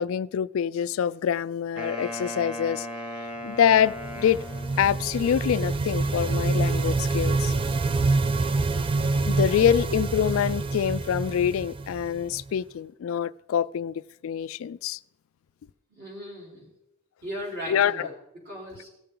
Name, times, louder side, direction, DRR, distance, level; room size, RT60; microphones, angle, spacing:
voice 1, 0.0-2.9 3.4-4.4 4.8-7.5 9.3-15.0 17.7-18.1, left 9 dB, 75° left, 0.3 m, -25 dB
Wind instrument woodwind instrument, 1.8-5.2, left 1 dB, 5° right, 1.2 m, -37 dB
sound 1, 3.7-12.5, right 3 dB, 25° right, 0.3 m, -26 dB
voice 2, 15.9-16.7 17.2-18.9, equal, 45° right, 4.0 m, -38 dB
17.5 x 6.9 x 3.7 m
head